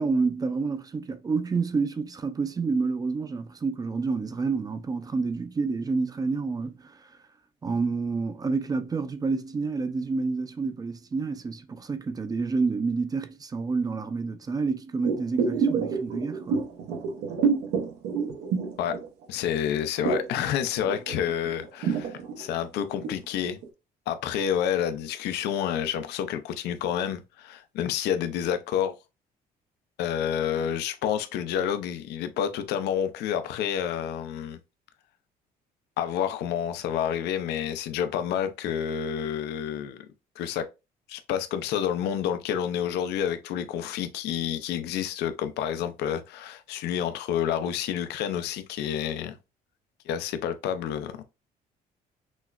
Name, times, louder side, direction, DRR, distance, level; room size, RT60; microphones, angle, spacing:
voice 1, 0.0-7.1 7.6-16.7, right 4 dB, 20° right, 0.4 m, -29 dB
sound 1, 15.0-19.5 19.7-23.2 23.6-23.7, right 5 dB, 90° right, 0.8 m, -28 dB
voice 2, 19.3-23.6 24.1-28.9 30.0-34.6 36.0-40.1 40.4-40.7 41.1-49.4 50.1-51.2, left 9 dB, 80° left, 0.5 m, -29 dB
6.1 x 2.1 x 2.3 m
cardioid pair, 110°, 17 cm